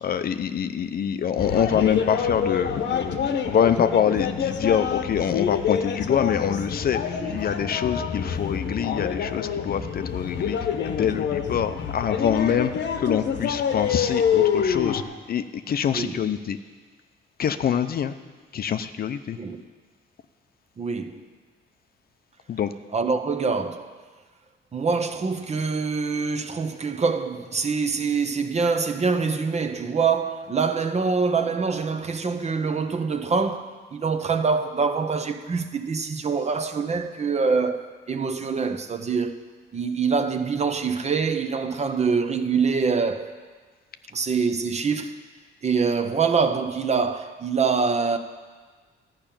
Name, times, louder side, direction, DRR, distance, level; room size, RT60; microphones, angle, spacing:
voice 1, 0.0-10.6 10.8-15.0 15.3-16.6 17.4-18.1 18.5-19.4 22.5-22.7, left 8 dB, 50° left, 0.6 m, -25 dB
sound 1, 1.4-15.0, left 7 dB, 65° left, 1.0 m, -26 dB
voice 2, 20.8-21.2 22.9-23.9 24.7-39.4 39.7-43.3 44.1-45.2 45.6-48.2, right 5 dB, 35° right, 0.8 m, -25 dB
12.5 x 5.6 x 8.8 m
cardioid pair, 90°, 20 cm